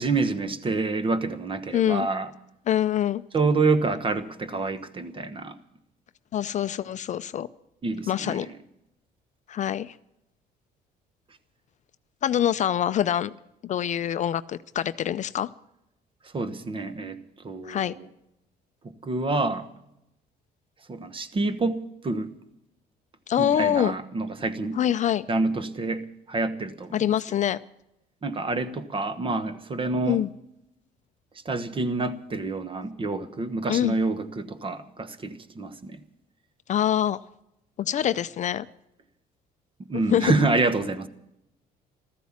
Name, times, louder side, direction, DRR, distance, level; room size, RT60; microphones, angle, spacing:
voice 1, 0.0-2.3 3.3-5.6 7.8-8.5 16.2-18.1 18.8-19.7 20.9-22.3 23.4-24.8 25.3-27.1 28.2-30.3 31.4-36.0 39.9-41.1, right 3 dB, 30° right, 1.2 m, -27 dB
voice 2, 1.7-2.1 2.7-3.2 6.3-7.5 8.1-8.5 9.5-9.9 12.2-13.3 13.6-15.5 17.6-17.9 23.3-23.9 24.8-25.3 26.9-27.6 30.1-30.3 33.7-33.9 36.7-37.2 37.8-38.7 40.1-40.3, left 10 dB, 45° left, 0.5 m, -25 dB
14.5 x 13.5 x 7.3 m
cardioid pair, 110°, 17 cm